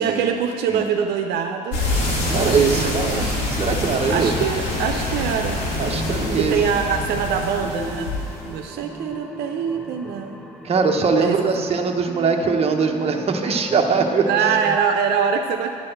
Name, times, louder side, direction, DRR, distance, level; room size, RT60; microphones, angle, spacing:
voice 1, 0.0-1.8 2.2-3.4 4.1-5.6 6.4-8.1 8.4-10.4 11.2-11.5 14.3-15.7, right 7 dB, 75° right, 4 dB, 0.6 m, -24 dB
sound 1, 1.7-8.6, left 2 dB, 85° left, 2.1 m, -26 dB
voice 2, 2.3-4.3 5.8-6.5 10.6-14.2, right 5 dB, 35° right, 2 dB, 0.9 m, -21 dB
sound 2, 3.5-14.8, equal, ahead, 0.6 m, -35 dB
10.5 x 4.2 x 7.8 m, 2.4 s
cardioid pair, 110°, 17 cm